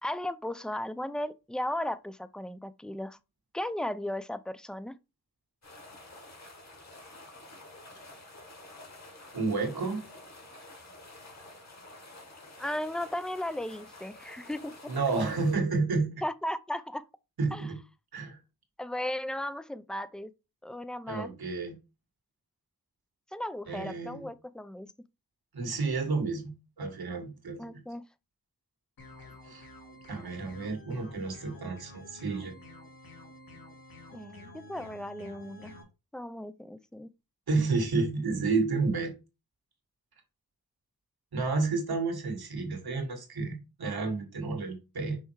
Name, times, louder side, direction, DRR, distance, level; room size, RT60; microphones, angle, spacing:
voice 1, 0.0-3.2 3.5-5.0 12.6-15.0 16.2-17.0 17.5-17.7 18.8-20.3 20.6-21.3 23.3-24.9 27.6-28.1 34.1-35.7 36.1-37.1, left 1 dB, ahead, 0.5 m, -36 dB
sound 1, 5.6-15.6, left 2 dB, 45° left, 2.1 m, -50 dB
voice 2, 9.3-10.0 14.9-16.2 17.4-17.8 18.1-18.4 21.1-21.8 23.7-24.3 25.5-27.7 29.4-29.7 30.1-32.5 37.5-39.1 41.3-45.2, right 3 dB, 90° right, 1.9 m, -30 dB
sound 2, 29.0-35.8, left 1 dB, 70° left, 2.3 m, -50 dB
5.7 x 4.4 x 4.7 m
wide cardioid pair, 75°, 36 cm